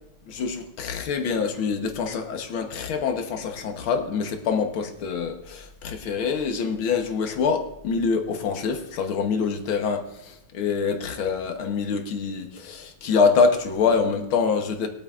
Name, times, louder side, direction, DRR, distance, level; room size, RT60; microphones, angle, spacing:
voice 1, 0.3-14.9, left 5 dB, 90° left, 5 dB, 2.0 m, -25 dB
22.0 x 9.0 x 2.5 m, 0.88 s
omnidirectional pair, 2.2 m